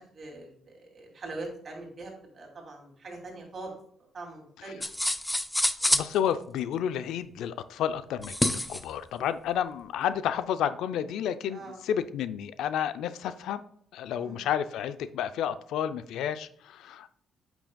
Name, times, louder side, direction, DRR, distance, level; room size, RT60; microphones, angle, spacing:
voice 1, 0.0-3.7 4.1-4.8 5.8-6.0 11.5-11.8 14.2-14.4, right 2 dB, 45° right, 1 dB, 2.7 m, -42 dB
sound 1, 4.8-6.1 8.2-8.8, left 1 dB, 10° left, 0.5 m, -27 dB
voice 2, 5.9-13.6 13.9-17.1, left 9 dB, 85° left, 13 dB, 0.4 m, -31 dB
8.6 x 6.1 x 2.3 m, 0.64 s
cardioid pair, 95°, 0 cm